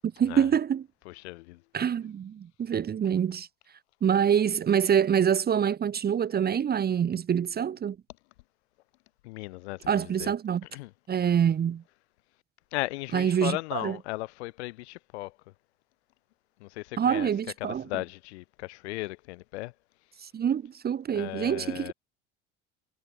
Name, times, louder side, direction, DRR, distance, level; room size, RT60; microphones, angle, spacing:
voice 1, 0.2-0.8 1.7-3.5 4.0-8.0 9.9-10.6 11.1-11.8 13.1-14.0 17.0-17.8 20.2-21.9, right 8 dB, 25° right, 1.2 m, -26 dB
voice 2, 1.0-1.6 9.2-10.3 10.7-10.9 12.7-15.4 16.6-17.3 17.6-19.7 21.1-21.9, left 21 dB, 65° left, 6.8 m, -36 dB
figure-of-eight pair, 70°, 35 cm